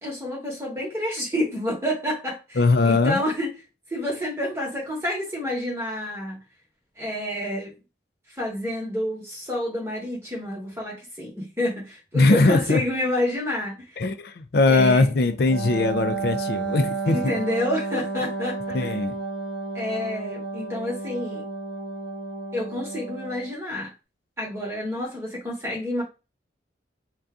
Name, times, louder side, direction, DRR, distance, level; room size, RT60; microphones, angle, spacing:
voice 1, 0.0-2.6 2.8-3.5 3.9-6.4 7.0-7.7 8.3-14.0 14.7-15.1 17.1-19.0 19.7-21.4 22.5-23.9 24.4-26.0, left 1 dB, 15° right, 1.1 m, -29 dB
voice 2, 2.6-3.2 12.1-12.8 14.0-17.3 18.7-19.2, left 3 dB, 55° left, 0.4 m, -20 dB
Wind instrument woodwind instrument, 15.5-23.6, right 3 dB, 50° right, 0.5 m, -32 dB
2.6 x 2.3 x 3.6 m
head